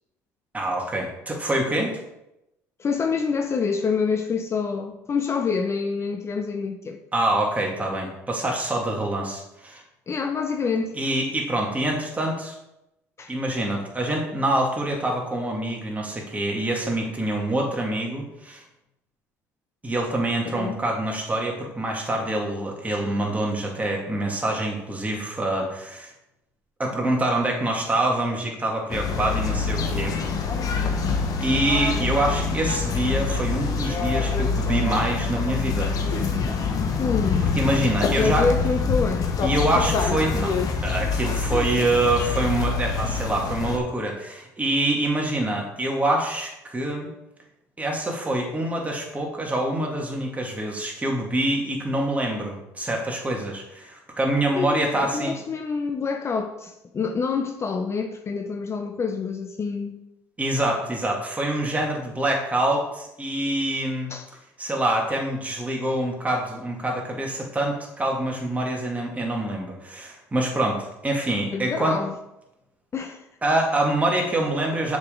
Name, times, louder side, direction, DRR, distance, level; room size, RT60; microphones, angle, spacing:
voice 1, 0.5-2.0 7.1-9.8 10.9-12.5 13.3-18.6 19.8-26.1 26.8-30.2 31.4-36.2 37.4-38.5 39.4-47.1 47.8-55.4 60.4-64.1 64.6-72.0 73.4-75.0, right 1 dB, 20° right, 2.1 m, -25 dB
voice 2, 2.8-7.0 10.1-11.0 13.2-13.3 20.5-20.7 37.0-37.5 37.9-39.3 41.5-41.7 54.5-60.0 64.1-64.3 71.5-72.1 72.9-73.2, left 5 dB, 35° left, 0.6 m, -27 dB
sound 1, 28.9-43.8, left 5 dB, 50° left, 1.1 m, -25 dB
6.5 x 5.2 x 3.8 m
hypercardioid pair, 70°, 8 cm